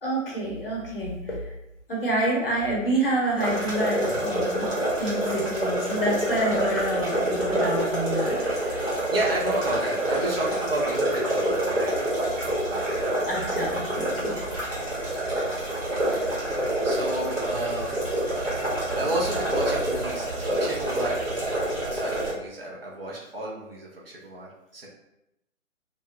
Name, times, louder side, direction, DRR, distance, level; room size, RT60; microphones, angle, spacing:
voice 1, 0.0-1.5 1.9-4.7 5.0-8.8 13.2-15.0 16.1-16.3, right 1 dB, 45° left, -3 dB, 0.8 m, -28 dB
sound 1, 3.4-22.3, right 1 dB, 65° right, 1.2 m, -27 dB
voice 2, 9.1-11.9 12.4-13.2 15.4-15.5 16.8-18.4 18.9-21.2 21.9-24.9, right 1 dB, 50° right, -3 dB, 0.5 m, -32 dB
2.4 x 2.0 x 2.5 m, 0.86 s
figure-of-eight pair, 140°, 40 cm